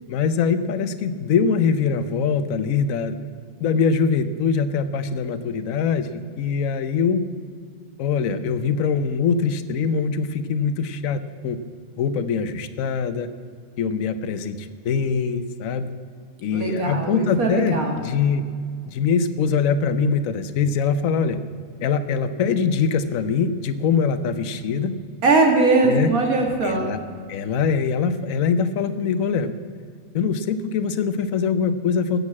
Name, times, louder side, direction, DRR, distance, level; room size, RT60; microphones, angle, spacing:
voice 1, 0.1-3.2 3.6-7.2 8.0-11.6 12.0-13.3 13.8-15.9 16.4-18.4 18.9-21.4 21.8-25.0 25.8-26.1 26.6-27.0 27.3-29.5 30.1-32.2, left 6 dB, 70° left, 10 dB, 1.2 m, -23 dB
voice 2, 16.5-18.0 25.2-26.9, right 3 dB, 85° right, 2 dB, 2.4 m, -20 dB
16.0 x 6.7 x 7.3 m, 2.1 s
omnidirectional pair, 1.5 m